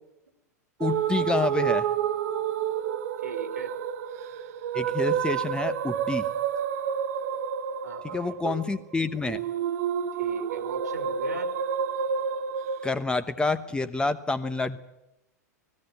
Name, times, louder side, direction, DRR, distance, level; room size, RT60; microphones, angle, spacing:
voice 1, 0.8-1.9 4.7-6.3 8.1-9.4 12.8-14.8, left 3 dB, 10° left, 11 dB, 1.0 m, -28 dB
sound 1, 0.8-12.9, right 8 dB, 60° right, 1.3 m, -29 dB
voice 2, 3.2-3.7 7.8-8.6 10.2-11.5, right 5 dB, 85° right, 8 dB, 2.7 m, -38 dB
19.0 x 16.5 x 9.1 m, 0.89 s
figure-of-eight pair, 95°, 9 cm